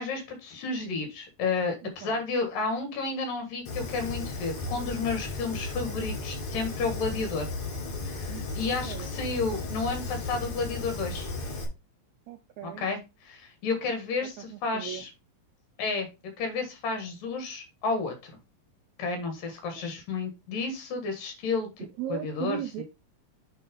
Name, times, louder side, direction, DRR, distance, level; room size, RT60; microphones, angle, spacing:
voice 1, 0.0-7.5 8.0-11.2 12.8-13.0 13.2-15.1 15.8-16.1 16.4-18.3 19.0-21.8 22.1-22.6, left 4 dB, 70° left, 5 dB, 3.4 m, -31 dB
voice 2, 1.8-2.2 8.3-8.4 8.8-9.2 12.3-12.9 14.4-15.1 19.5-20.0 21.8-22.8, right 12 dB, 80° right, 7 dB, 1.6 m, -38 dB
Fire, 3.7-11.7, left 3 dB, 55° left, 3.4 m, -35 dB
9.2 x 3.5 x 5.3 m, 0.26 s
omnidirectional pair, 4.1 m